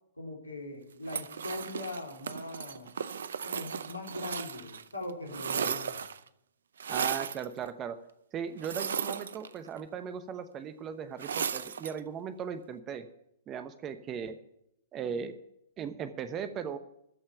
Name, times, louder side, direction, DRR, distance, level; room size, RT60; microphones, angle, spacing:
voice 1, 0.2-2.9 3.4-5.9, left 1 dB, 90° left, 1 dB, 3.6 m, -40 dB
sound 1, 1.1-4.8 5.1-6.3 6.8-7.5 8.6-9.8 11.2-12.0, right 7 dB, 70° right, 0.6 m, -35 dB
voice 2, 6.9-8.0 8.3-13.1 13.5-14.4 14.9-15.4 15.8-16.8, right 7 dB, 25° right, 11 dB, 0.9 m, -38 dB
13.5 x 5.6 x 8.9 m, 0.79 s
figure-of-eight pair, 110°, 0 cm